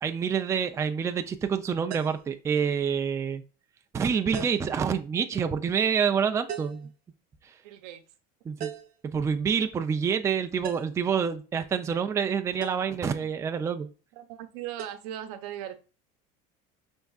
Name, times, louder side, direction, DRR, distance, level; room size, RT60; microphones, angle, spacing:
voice 1, 0.0-3.4 3.9-6.9 7.4-7.6 8.4-8.7 9.1-13.9, right 7 dB, 15° right, 8 dB, 0.3 m, -27 dB
sound 1, 1.9-2.3 4.3-4.8 6.5-6.9 8.6-9.0 10.6-11.1 12.6-12.9 14.8-15.0, right 8 dB, 50° right, 0.7 m, -38 dB
voice 2, 7.6-8.0 11.7-11.8 14.2-15.8, right 11 dB, 90° right, 8 dB, 0.7 m, -38 dB
5.3 x 3.5 x 2.3 m, 0.34 s
cardioid pair, 135°, 19 cm